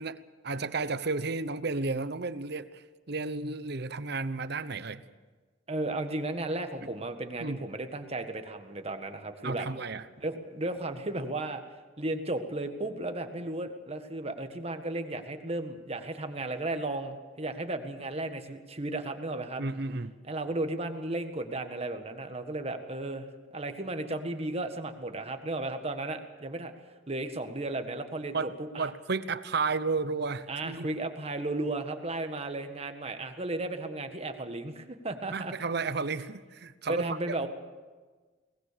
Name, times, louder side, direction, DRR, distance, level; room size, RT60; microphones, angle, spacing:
voice 1, 0.0-2.8 3.1-5.0 7.4-7.6 9.4-10.0 19.6-20.2 28.3-28.5 28.8-30.9 35.3-37.3, right 4 dB, 60° right, 13 dB, 0.9 m, -32 dB
voice 2, 5.7-9.7 10.2-11.6 12.0-19.6 20.3-23.3 23.5-26.7 27.1-28.9 30.5-35.5 36.9-37.5, right 2 dB, 35° right, 7 dB, 1.6 m, -34 dB
23.0 x 20.0 x 6.9 m, 1.4 s
head